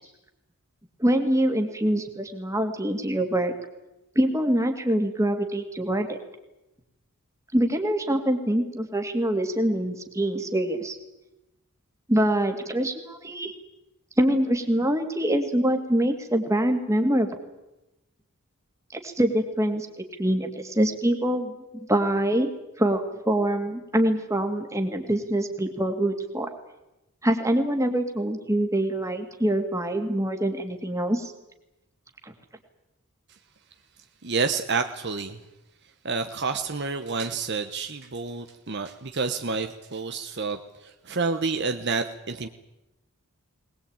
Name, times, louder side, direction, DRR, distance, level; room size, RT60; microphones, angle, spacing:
voice 1, 1.0-3.5 4.2-6.2 7.5-11.0 12.1-13.5 14.2-17.4 18.9-21.6 21.9-22.5 22.8-26.5 27.2-31.3, right 1 dB, 15° right, 5 dB, 2.3 m, -24 dB
voice 2, 34.2-35.4 36.0-42.5, right 4 dB, 50° right, 7 dB, 1.1 m, -29 dB
20.5 x 20.5 x 8.8 m, 0.96 s
head